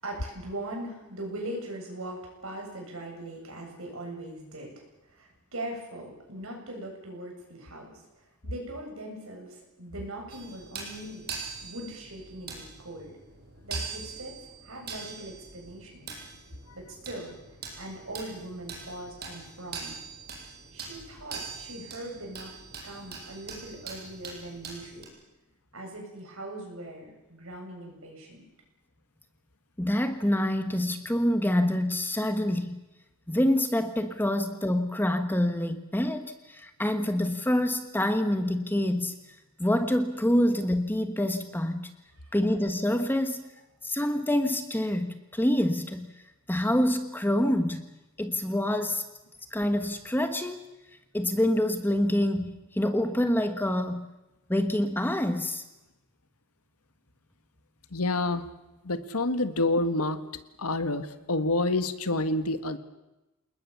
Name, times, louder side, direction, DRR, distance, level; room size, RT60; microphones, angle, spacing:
voice 1, 0.0-8.0 8.4-11.3 11.6-13.1 13.6-16.2 16.7-17.4 17.8-20.0 20.7-22.5 22.8-25.1 25.7-28.4 42.2-42.3, right 1 dB, 65° right, 1 dB, 7.9 m, -40 dB
sound 1, 10.3-25.1, right 5 dB, 45° right, 5.7 m, -43 dB
voice 2, 29.8-32.8 33.3-39.1 39.6-41.9 42.3-43.5 43.8-46.1 46.5-47.8 48.2-49.0 49.5-50.7 51.1-54.1 54.5-55.6, left 1 dB, 10° left, 8 dB, 1.2 m, -26 dB
voice 3, 57.9-58.5 58.8-60.2 60.6-62.8, left 2 dB, 80° left, 10 dB, 1.7 m, -27 dB
28.5 x 20.5 x 7.1 m, 0.99 s
head